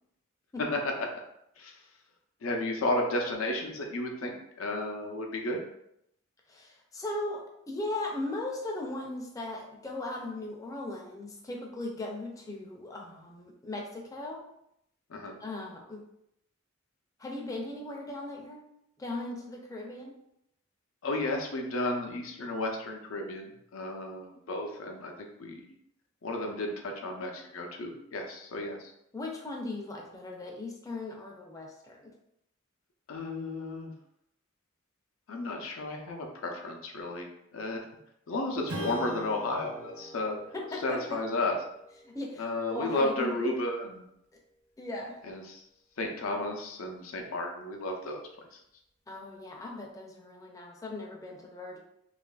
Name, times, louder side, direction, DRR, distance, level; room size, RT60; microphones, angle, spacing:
voice 1, 2.4-5.6 15.1-15.4 21.0-25.6 26.2-28.9 33.1-33.9 35.3-37.3 37.5-37.8 38.3-40.4 40.8-41.6 42.4-44.1 45.3-45.6 46.0-48.2 48.5-48.6, left 2 dB, 85° left, 3 dB, 0.5 m, -33 dB
voice 2, 6.5-14.5 15.4-16.0 17.2-18.6 19.0-20.2 29.1-32.1 40.5-41.2 42.0-43.5 44.8-45.2 49.1-51.8, left 2 dB, 15° left, 0 dB, 0.4 m, -38 dB
Strum, 38.7-43.6, equal, 90° right, 0.7 m, -43 dB
2.8 x 2.4 x 2.3 m, 0.78 s
head